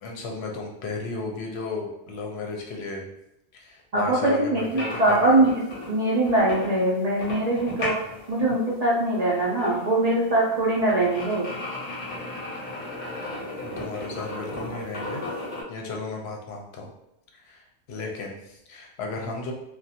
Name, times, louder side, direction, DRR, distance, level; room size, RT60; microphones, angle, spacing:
voice 1, 0.0-3.1 3.5-5.4 13.6-15.2 15.7-16.9 17.3-19.5, left 3 dB, 70° left, 0 dB, 0.8 m, -34 dB
voice 2, 3.9-5.6 5.9-8.0 8.3-11.5, right 2 dB, 50° right, -4 dB, 0.5 m, -22 dB
sound 1, 4.6-15.6, left 1 dB, 45° left, 0.5 m, -36 dB
2.4 x 2.2 x 2.7 m, 0.84 s
omnidirectional pair, 1.2 m